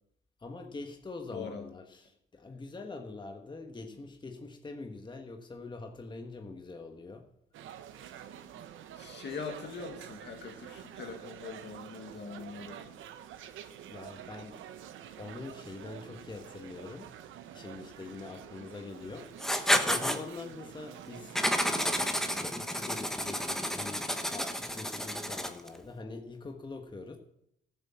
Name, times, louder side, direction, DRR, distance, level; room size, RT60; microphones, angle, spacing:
voice 1, 0.4-7.3 8.0-8.1 13.5-13.6 13.9-14.6 15.2-17.1 17.5-19.3 19.8-21.4 22.2-27.2, left 3 dB, 25° left, 3 dB, 1.4 m, -44 dB
voice 2, 1.3-1.7 9.0-12.8, left 5 dB, 60° left, 4 dB, 2.2 m, -42 dB
sound 1, 7.5-22.4, right 10 dB, 80° right, 1.0 m, -48 dB
Writing, 19.4-20.2 21.4-25.7, equal, ahead, 1.2 m, -30 dB
13.5 x 7.5 x 5.8 m, 0.78 s
cardioid pair, 90°, 20 cm